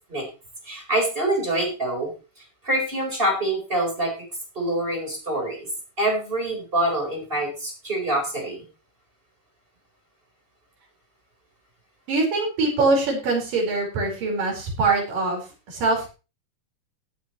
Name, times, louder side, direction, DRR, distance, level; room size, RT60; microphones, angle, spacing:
voice 1, 0.7-2.1 2.6-4.1 4.5-5.7 6.0-8.6, right 1 dB, 15° right, 1 dB, 4.4 m, -25 dB
voice 2, 12.1-16.1, right 3 dB, 85° right, -1 dB, 6.3 m, -23 dB
17.5 x 8.9 x 3.1 m, 0.31 s
omnidirectional pair, 3.7 m